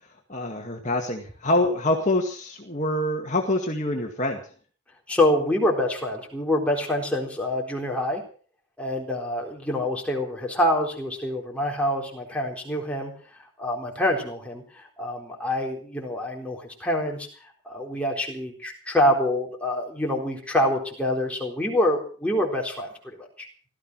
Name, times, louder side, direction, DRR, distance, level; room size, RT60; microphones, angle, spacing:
voice 1, 0.3-4.4, left 1 dB, 35° left, 2 dB, 2.0 m, -25 dB
voice 2, 5.1-8.2 8.8-13.1 13.6-17.3 17.6-23.5, left 1 dB, 5° left, -1 dB, 3.9 m, -26 dB
17.0 x 13.5 x 6.2 m, 0.43 s
head